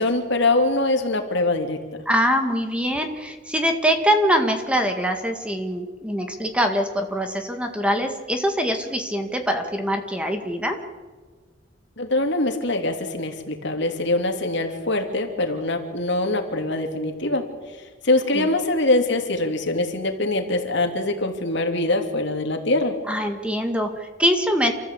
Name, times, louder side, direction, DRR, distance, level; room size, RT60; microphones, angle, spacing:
voice 1, 0.0-1.8 12.0-17.4 18.0-22.9, left 2 dB, 65° left, 4 dB, 2.9 m, -23 dB
voice 2, 2.1-10.8 18.3-18.5 23.1-24.7, equal, 5° right, 5 dB, 1.9 m, -23 dB
28.0 x 14.5 x 8.5 m, 1.4 s
head